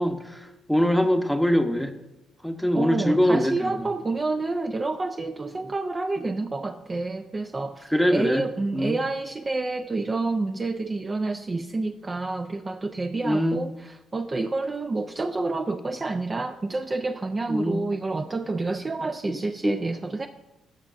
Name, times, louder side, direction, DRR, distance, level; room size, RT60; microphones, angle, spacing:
voice 1, 0.0-1.9 2.4-3.9 7.9-8.4 8.7-9.0 13.2-13.6 17.5-17.8 19.2-19.4 19.6-19.7, equal, ahead, 6 dB, 0.8 m, -23 dB
voice 2, 2.7-20.3, right 3 dB, 25° right, 6 dB, 0.4 m, -29 dB
16.5 x 6.2 x 2.5 m, 0.94 s
cardioid pair, 90°, 0 cm